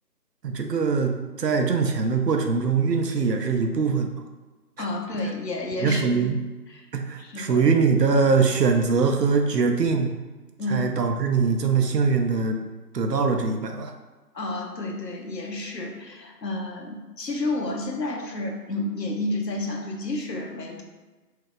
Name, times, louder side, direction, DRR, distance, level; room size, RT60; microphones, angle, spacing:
voice 1, 0.4-4.3 5.8-6.4 6.9-10.1 10.7-12.6 12.9-13.9, right 5 dB, 75° right, 4 dB, 0.6 m, -22 dB
voice 2, 4.8-6.2 6.7-6.9 7.2-7.7 10.6-10.9 14.3-20.8, left 2 dB, 85° left, 2 dB, 0.8 m, -30 dB
2.7 x 2.4 x 3.7 m, 1.2 s
figure-of-eight pair, 180°, 49 cm